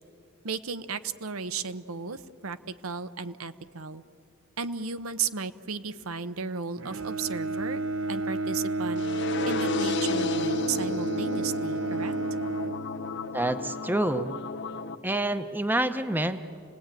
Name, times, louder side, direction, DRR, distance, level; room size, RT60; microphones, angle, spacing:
voice 1, 0.4-2.6 2.8-4.0 4.6-7.8 8.1-9.0 9.5-12.1, right 5 dB, 85° right, 11 dB, 0.9 m, -34 dB
Bowed string instrument, 6.8-13.5, right 2 dB, 65° right, 1.0 m, -31 dB
sound 1, 9.0-15.0, left 3 dB, 55° left, 0.9 m, -33 dB
voice 2, 13.3-14.3 15.0-16.4, right 1 dB, 10° right, 10 dB, 0.7 m, -27 dB
30.0 x 19.0 x 9.0 m, 2.7 s
head